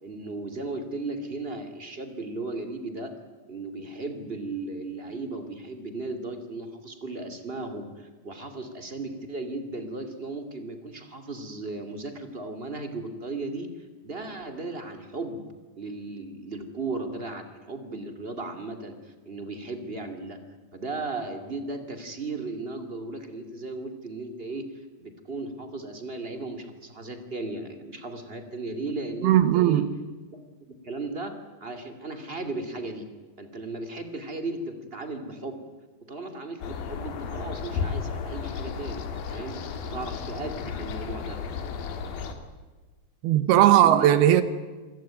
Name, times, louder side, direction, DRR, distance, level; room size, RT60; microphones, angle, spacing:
voice 1, 0.0-3.1 3.5-13.7 14.0-15.4 15.8-20.4 20.7-24.7 25.0-29.8 30.3-33.1 33.4-35.6 36.1-39.6 39.8-41.4 43.7-44.1, right 3 dB, 20° right, 2.1 m, -36 dB
voice 2, 29.2-29.9 43.2-44.4, right 12 dB, 80° right, 3.0 m, -18 dB
sound 1, 36.6-42.3, left 6 dB, 65° left, 3.8 m, -33 dB
27.0 x 17.5 x 9.2 m
omnidirectional pair, 4.6 m